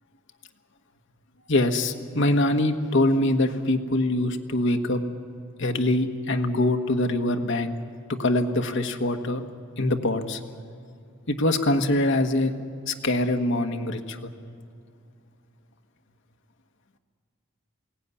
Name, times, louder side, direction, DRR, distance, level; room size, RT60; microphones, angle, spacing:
voice 1, 1.5-5.0 5.6-7.7 8.2-9.4 9.8-10.4 11.3-12.5 12.9-14.3, left 1 dB, 60° left, 5 dB, 1.4 m, -24 dB
22.0 x 17.5 x 9.8 m, 2.4 s
head